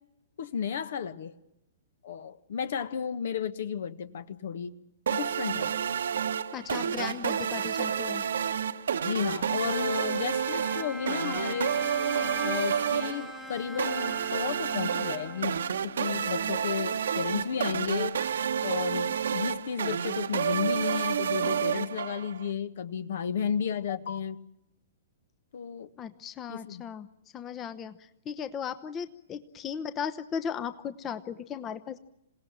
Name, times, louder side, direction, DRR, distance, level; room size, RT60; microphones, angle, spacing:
voice 1, 0.4-1.3 2.0-4.7 5.1-5.7 9.0-11.8 12.4-18.2 18.6-24.4 25.5-25.9 26.5-26.9, left 7 dB, 60° left, 1.4 m, -33 dB
sound 1, 5.1-22.5, right 8 dB, 65° right, 1.1 m, -30 dB
voice 2, 6.5-8.2 26.0-27.1 27.3-32.0, left 7 dB, 25° left, 1.0 m, -36 dB
Bowed string instrument, 9.6-16.1, left 2 dB, 5° left, 1.8 m, -41 dB
27.5 x 18.0 x 9.0 m
figure-of-eight pair, 115°, 0 cm